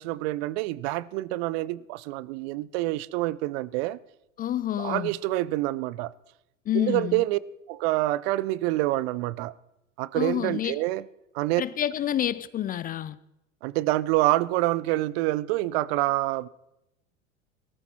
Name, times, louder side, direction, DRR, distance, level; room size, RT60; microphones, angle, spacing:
voice 1, 0.0-4.0 4.8-6.1 6.7-7.4 7.7-9.5 10.0-11.0 11.3-11.6 13.6-16.5, right 17 dB, 60° right, 0.6 m, -27 dB
voice 2, 4.4-5.1 6.7-7.2 10.1-10.8 11.6-13.2, left 11 dB, 25° left, 0.4 m, -28 dB
18.0 x 13.5 x 4.3 m
hypercardioid pair, 85°, 37 cm